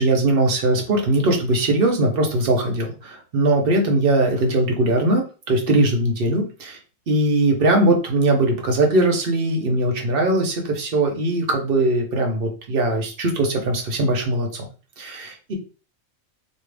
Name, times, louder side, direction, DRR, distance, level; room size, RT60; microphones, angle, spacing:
voice 1, 0.0-6.8 7.1-14.6 15.0-15.5, right 2 dB, 50° right, 2 dB, 0.9 m, -20 dB
3.5 x 2.4 x 3.3 m, 0.36 s
omnidirectional pair, 1.4 m